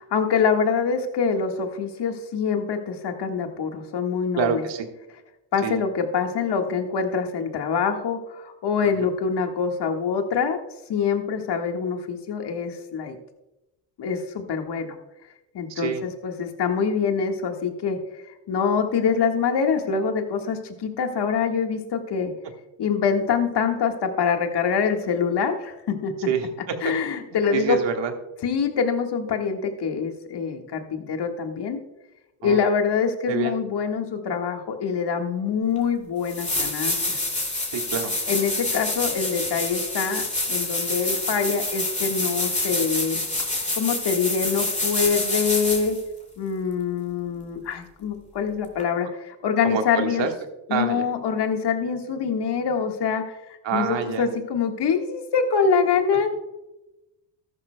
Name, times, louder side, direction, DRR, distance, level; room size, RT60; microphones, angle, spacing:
voice 1, 0.0-4.6 5.5-10.6 10.9-13.2 14.0-15.0 15.5-22.3 22.8-26.1 26.8-27.8 28.4-31.8 32.4-37.2 38.3-43.2 43.7-46.0 46.4-50.3 50.7-56.3, left 6 dB, 60° left, 4 dB, 1.7 m, -25 dB
voice 2, 4.4-4.9 5.6-5.8 9.0-9.1 15.7-16.0 26.3-26.9 27.5-28.1 32.4-32.6 33.3-33.6 37.7-38.1 49.6-50.3 50.7-51.0 53.6-54.3, right 6 dB, 70° right, 4 dB, 1.7 m, -26 dB
sound 1, 35.8-35.9 36.2-46.0 48.8-48.9, left 2 dB, 15° left, 2.8 m, -27 dB
14.0 x 11.5 x 2.3 m, 0.97 s
supercardioid pair, 70°, 46 cm